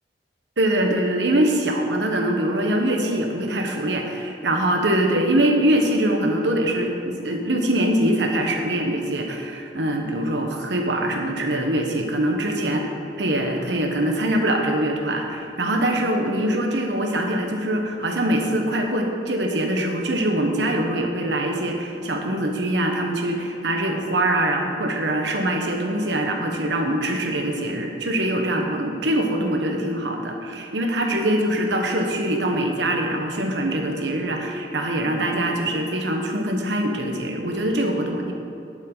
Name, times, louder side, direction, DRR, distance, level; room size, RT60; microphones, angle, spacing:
voice 1, 0.6-12.8 13.1-38.3, right 1 dB, 85° right, 2 dB, 1.2 m, -23 dB
11.5 x 7.5 x 4.0 m, 2.7 s
head